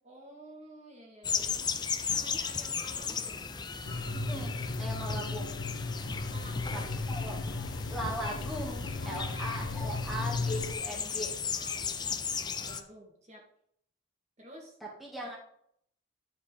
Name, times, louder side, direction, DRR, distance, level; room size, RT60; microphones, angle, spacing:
voice 1, 0.0-1.6 2.1-3.4 5.3-5.5 6.3-6.9 9.0-10.2 11.5-13.5 14.4-14.8, right 1 dB, 35° right, 0 dB, 2.0 m, -51 dB
sound 1, 1.2-12.8, left 6 dB, 20° left, 0.5 m, -36 dB
sound 2, 3.8-10.7, left 3 dB, 70° left, 0.7 m, -35 dB
voice 2, 4.1-5.5 7.1-7.4 7.9-11.3 15.0-15.4, equal, ahead, -4 dB, 1.8 m, -39 dB
10.5 x 5.2 x 5.0 m, 0.67 s
head